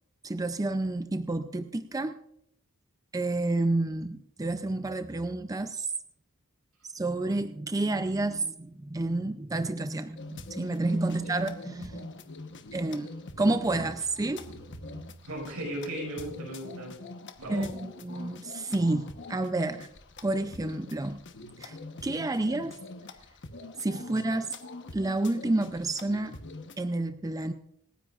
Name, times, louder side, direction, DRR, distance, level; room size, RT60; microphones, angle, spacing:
voice 1, 0.2-2.2 3.1-5.9 6.8-12.1 12.7-13.1 13.4-15.1 17.5-19.9 20.2-21.2 21.6-21.8 22.0-22.8 23.8-24.5 24.9-26.3 26.8-27.5, right 2 dB, 15° right, 9 dB, 0.5 m, -30 dB
sound 1, 10.2-26.8, left 3 dB, 55° left, 1.1 m, -44 dB
voice 2, 15.2-17.0 17.4-17.7 24.1-24.2, right 1 dB, 75° right, -1 dB, 5.8 m, -37 dB
26.5 x 10.0 x 2.5 m, 0.71 s
head